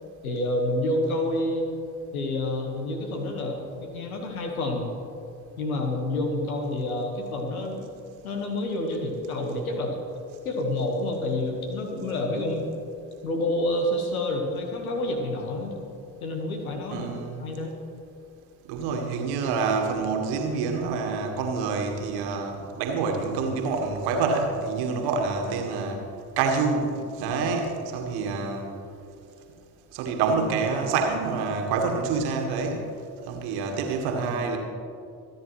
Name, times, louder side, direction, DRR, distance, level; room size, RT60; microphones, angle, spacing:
voice 1, 0.2-1.7 2.1-4.9 5.6-7.9 8.2-10.0 10.4-12.6 13.2-15.7 16.2-17.1 17.4-17.8, left 1 dB, 80° left, 3 dB, 1.6 m, -28 dB
voice 2, 16.9-17.5 18.7-26.0 26.4-28.7 29.9-32.9 33.3-34.6, right 4 dB, 60° right, 3 dB, 1.8 m, -27 dB
26.5 x 9.6 x 3.2 m, 2.6 s
figure-of-eight pair, 45°, 43 cm